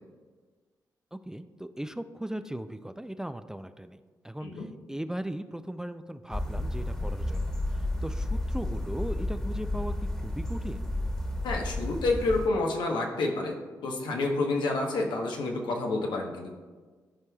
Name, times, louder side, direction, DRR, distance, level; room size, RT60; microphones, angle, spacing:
voice 1, 1.1-4.0 4.2-10.8, right 1 dB, 5° right, 10 dB, 0.4 m, -38 dB
sound 1, 6.3-12.5, left 1 dB, 10° left, 1.3 m, -32 dB
voice 2, 11.4-13.5 13.8-16.5, left 2 dB, 80° left, 1 dB, 1.0 m, -29 dB
12.5 x 4.6 x 2.3 m, 1.4 s
supercardioid pair, 55°, 8 cm